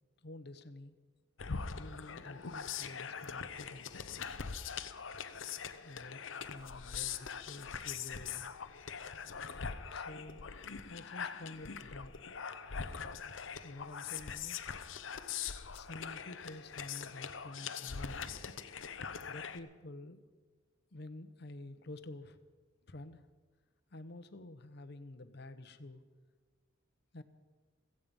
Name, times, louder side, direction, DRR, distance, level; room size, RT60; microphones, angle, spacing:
voice 1, 0.2-1.0 1.8-3.9 5.8-8.5 9.9-10.4 10.9-12.1 13.6-14.7 15.7-18.5 19.3-20.3 20.9-22.4 22.8-23.2 23.9-26.0 27.1-27.2, left 2 dB, 60° left, 11 dB, 1.0 m, -49 dB
sound 1, 1.4-19.6, left 6 dB, 85° left, 0.8 m, -42 dB
16.0 x 15.0 x 5.4 m, 1.4 s
head